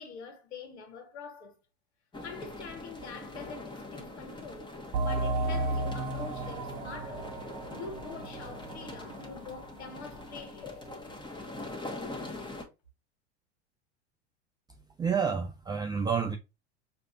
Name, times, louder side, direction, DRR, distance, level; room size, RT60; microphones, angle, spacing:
voice 1, 0.0-1.6 2.2-4.8 5.0-7.4 7.7-11.2, left 5 dB, 70° left, 1.4 m, -45 dB
sound 1, 2.1-12.6, left 2 dB, 15° left, 1.2 m, -43 dB
sound 2, 4.9-10.2, right 2 dB, 50° right, 0.9 m, -34 dB
voice 2, 15.0-16.4, right 6 dB, 10° right, 0.4 m, -29 dB
6.4 x 2.8 x 2.3 m
hypercardioid pair, 80°, 34 cm